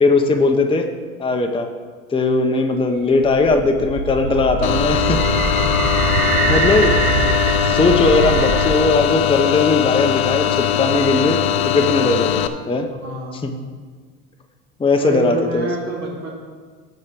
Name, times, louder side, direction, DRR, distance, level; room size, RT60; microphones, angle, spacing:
voice 1, 0.0-0.9 1.2-1.7 2.1-5.2 6.2-6.9 7.6-12.9 13.4-13.5 14.8-15.7, left 3 dB, 10° left, 4 dB, 0.8 m, -18 dB
sound 1, 2.9-9.1, right 4 dB, 70° right, 1.7 m, -22 dB
sound 2, 4.6-12.5, left 11 dB, 75° left, 0.8 m, -20 dB
voice 2, 6.3-6.7 12.9-13.5 14.9-16.3, right 2 dB, 40° right, -2 dB, 3.3 m, -29 dB
12.0 x 4.7 x 6.8 m, 1.5 s
hypercardioid pair, 95°, 43 cm